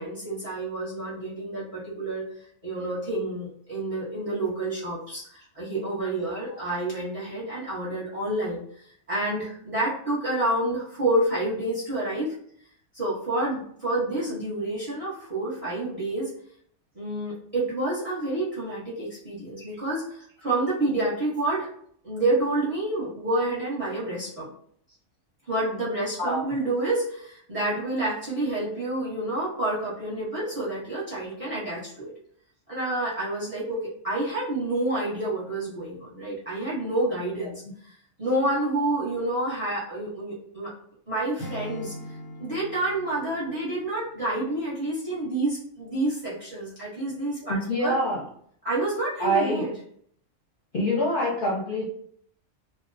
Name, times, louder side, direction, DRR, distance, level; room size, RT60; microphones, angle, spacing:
voice 1, 0.0-2.3 2.6-8.6 9.1-12.3 12.9-16.3 16.9-21.7 22.0-24.5 25.5-32.1 32.7-37.9 38.2-40.7 41.1-42.0 42.4-48.0 48.6-49.7, right 2 dB, 30° right, -9 dB, 0.8 m, -28 dB
Acoustic guitar / Strum, 41.4-44.5, left 1 dB, 90° left, 1.0 m, -41 dB
voice 2, 47.5-48.2 49.2-49.6 50.7-51.9, equal, 55° left, -6 dB, 0.7 m, -25 dB
2.3 x 2.1 x 2.5 m, 0.64 s
omnidirectional pair, 1.4 m